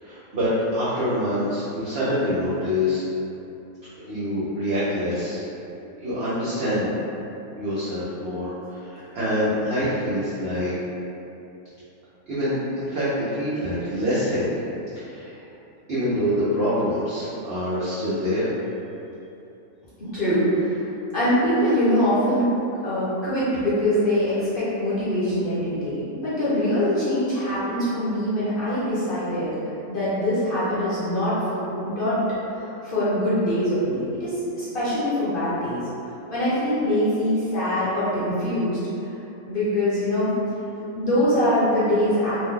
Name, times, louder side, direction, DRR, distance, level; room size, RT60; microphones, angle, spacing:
voice 1, 0.0-3.0 4.0-5.4 6.0-7.0 7.6-10.7 12.3-14.6 14.9-15.4 15.9-18.5, equal, 60° right, -11 dB, 0.7 m, -25 dB
voice 2, 20.0-20.8 21.1-22.4 22.8-29.6 29.9-32.2 32.5-35.8 36.3-38.8 39.4-40.3 40.9-42.4, equal, 45° left, -12 dB, 0.8 m, -23 dB
2.6 x 2.2 x 3.6 m, 2.9 s
omnidirectional pair, 1.6 m